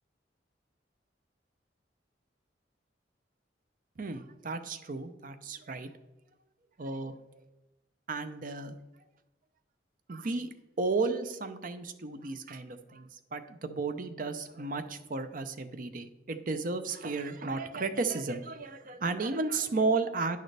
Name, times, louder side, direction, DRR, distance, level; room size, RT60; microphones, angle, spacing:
voice 1, 4.0-5.9 6.8-7.1 8.1-8.8 10.1-20.4, right 3 dB, 45° right, 10 dB, 0.6 m, -33 dB
9.8 x 6.5 x 3.3 m, 1.0 s
head